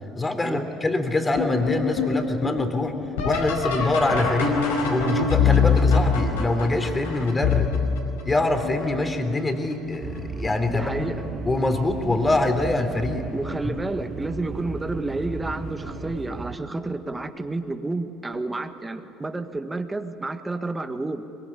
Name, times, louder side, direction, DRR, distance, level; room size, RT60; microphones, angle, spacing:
voice 1, 0.1-2.9 3.2-4.6 4.9-7.7 8.2-11.1 11.4-13.2 13.7-13.8, left 2 dB, 20° left, 6 dB, 3.5 m, -24 dB
sound 1, 1.4-9.0 9.7-10.2 10.7-11.3 12.6-12.7 13.4-13.7 15.9-16.0 18.3-18.4, left 5 dB, 80° left, 4.9 m, -24 dB
sound 2, 10.0-16.6, right 4 dB, 40° right, 1.7 m, -35 dB
voice 2, 10.7-11.2 13.3-21.2, right 2 dB, 15° right, 7 dB, 1.8 m, -30 dB
23.5 x 23.0 x 9.9 m, 2.7 s
hypercardioid pair, 65°, 0 cm